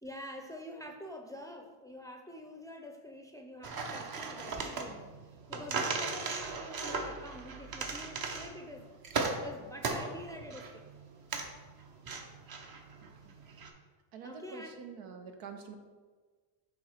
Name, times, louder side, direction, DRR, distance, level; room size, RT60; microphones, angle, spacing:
voice 1, 0.0-5.0 5.5-8.9 9.2-10.8 14.2-14.8, left 1 dB, 5° left, 3 dB, 0.5 m, -47 dB
sound 1, 3.6-13.7, right 4 dB, 45° right, 0.9 m, -37 dB
voice 2, 13.0-13.4 14.1-15.7, right 6 dB, 90° right, 5 dB, 1.0 m, -47 dB
7.1 x 3.1 x 5.0 m, 1.4 s
cardioid pair, 95°, 49 cm